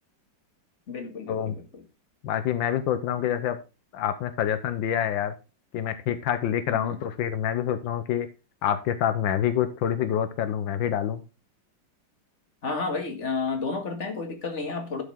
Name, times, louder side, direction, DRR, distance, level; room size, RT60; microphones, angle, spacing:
voice 1, 0.9-1.6 6.7-7.0 12.6-15.0, left 4 dB, 40° left, 5 dB, 2.4 m, -31 dB
voice 2, 2.2-3.6 3.9-5.3 5.7-8.3 8.6-11.2, left 9 dB, 85° left, 11 dB, 1.6 m, -27 dB
11.5 x 7.1 x 3.6 m, 0.30 s
omnidirectional pair, 2.0 m